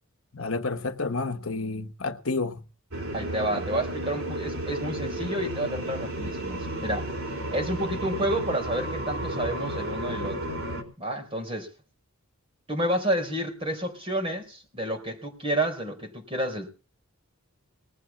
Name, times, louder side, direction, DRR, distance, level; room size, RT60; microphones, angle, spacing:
voice 1, 0.3-2.6, left 3 dB, 70° left, 1.2 m, -30 dB
sound 1, 2.9-10.8, right 1 dB, 70° right, 4.0 m, -33 dB
voice 2, 3.1-10.4 11.0-11.7 12.7-16.7, right 1 dB, 25° right, 4.1 m, -30 dB
20.0 x 7.7 x 7.2 m
head